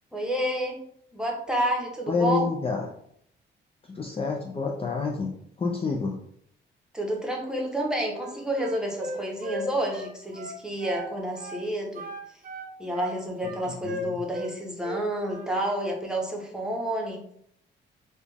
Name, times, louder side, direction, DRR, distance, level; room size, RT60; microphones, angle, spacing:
voice 1, 0.1-0.8 1.1-2.4 6.9-12.1 12.8-17.2, right 1 dB, 5° right, -1 dB, 1.1 m, -29 dB
voice 2, 2.1-2.9 3.9-5.3 5.6-6.2 13.8-14.2, left 4 dB, 30° left, 0 dB, 0.5 m, -28 dB
Wind instrument woodwind instrument, 8.1-11.1 11.4-11.6 11.9-14.5 14.8-15.5, right 1 dB, 45° right, 0.8 m, -36 dB
4.2 x 2.4 x 3.4 m, 0.68 s
cardioid pair, 90°, 20 cm